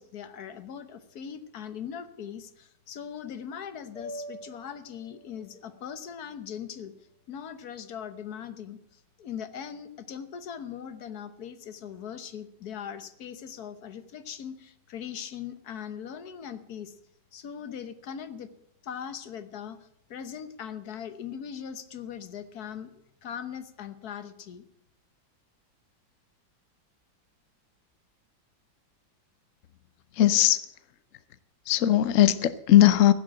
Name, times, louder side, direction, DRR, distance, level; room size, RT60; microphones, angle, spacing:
voice 1, 0.0-6.9 7.3-16.9 17.3-18.5 18.8-24.7, left 8 dB, 55° left, 11 dB, 1.4 m, -40 dB
sound 1, 3.9-8.2, equal, ahead, 6.2 m, -47 dB
voice 2, 30.2-30.6 31.7-33.1, left 13 dB, 75° left, 14 dB, 0.7 m, -19 dB
15.5 x 7.7 x 8.6 m, 0.78 s
omnidirectional pair, 2.1 m